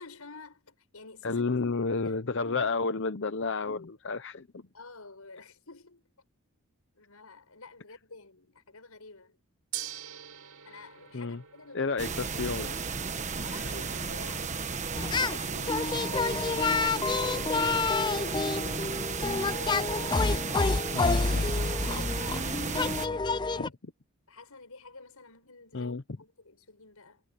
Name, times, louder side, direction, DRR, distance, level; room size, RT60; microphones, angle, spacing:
voice 1, 0.0-1.4 1.9-2.6 4.7-6.0 7.0-9.4 10.6-11.9 13.4-14.6 15.1-16.4 16.8-19.2 19.4-21.1 21.8-23.8 24.3-27.2, left 3 dB, 85° left, 5.9 m, -49 dB
voice 2, 1.2-4.5 11.1-11.4 11.7-12.8 20.9-21.6 25.7-26.0, left 4 dB, 55° left, 0.7 m, -31 dB
Gong, 9.7-19.9, right 12 dB, 90° right, 5.9 m, -48 dB
sound 1, 12.0-23.1, right 4 dB, 35° right, 1.3 m, -34 dB
sound 2, 14.9-15.4 15.7-23.7, left 4 dB, 20° left, 0.4 m, -28 dB
head